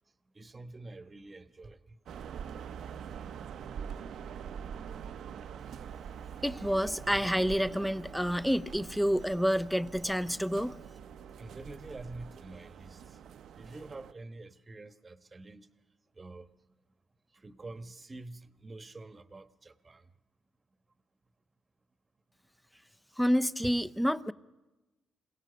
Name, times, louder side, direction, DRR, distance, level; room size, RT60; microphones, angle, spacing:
voice 1, 0.3-2.0 11.4-13.2 13.5-15.7 16.2-16.5 17.3-20.1 23.6-23.7, right 2 dB, 25° right, 1.2 m, -47 dB
sound 1, 2.1-14.1, right 7 dB, 70° right, 0.8 m, -44 dB
voice 2, 6.4-10.7 23.2-24.3, equal, ahead, 0.7 m, -28 dB
27.0 x 17.5 x 6.8 m
cardioid pair, 90°, 0 cm